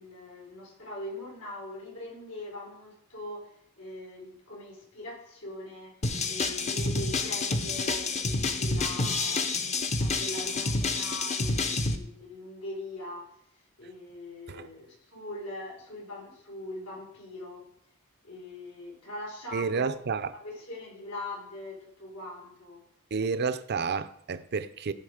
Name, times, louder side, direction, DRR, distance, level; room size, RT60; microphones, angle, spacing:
voice 1, 0.0-17.7 18.2-20.0 20.3-22.8, left 1 dB, 85° left, 4.7 m, -42 dB
sound 1, 6.0-12.0, left 3 dB, 30° left, 0.7 m, -29 dB
voice 2, 19.5-20.3 23.1-24.9, right 5 dB, 50° right, 0.5 m, -30 dB
15.0 x 5.1 x 4.9 m
head